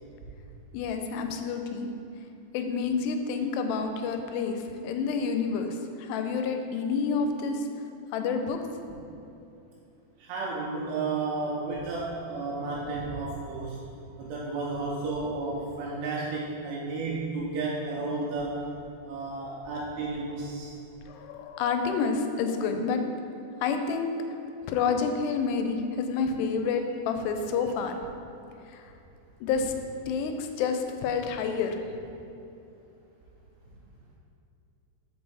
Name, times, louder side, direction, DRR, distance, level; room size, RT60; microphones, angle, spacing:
voice 1, 0.7-1.9 2.5-7.7 8.1-8.6 21.1-23.0 23.6-24.1 24.7-28.0 28.7-28.9 29.4-29.7 30.1-31.8, left 5 dB, 85° left, 6 dB, 2.6 m, -29 dB
voice 2, 10.2-13.9 14.2-18.6 19.0-20.8, right 3 dB, 80° right, -5 dB, 2.8 m, -32 dB
5.3 x 5.2 x 4.7 m, 2.8 s
omnidirectional pair, 4.8 m